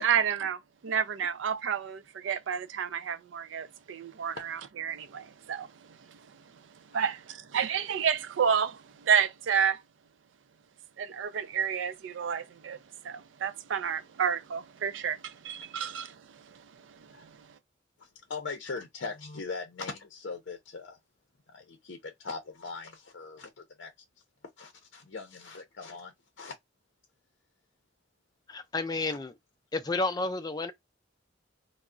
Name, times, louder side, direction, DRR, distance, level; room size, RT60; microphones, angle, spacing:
voice 1, 0.0-5.7 6.9-9.8 11.0-12.8 13.0-16.2 16.5-16.6 16.9-17.3, right 7 dB, 80° right, 0.4 m, -30 dB
voice 2, 18.3-21.0 21.5-23.9 24.6-26.5 29.0-29.2, left 4 dB, 70° left, 0.5 m, -40 dB
voice 3, 28.5-29.3 29.7-30.7, left 3 dB, 20° left, 0.4 m, -31 dB
2.3 x 2.0 x 3.6 m
head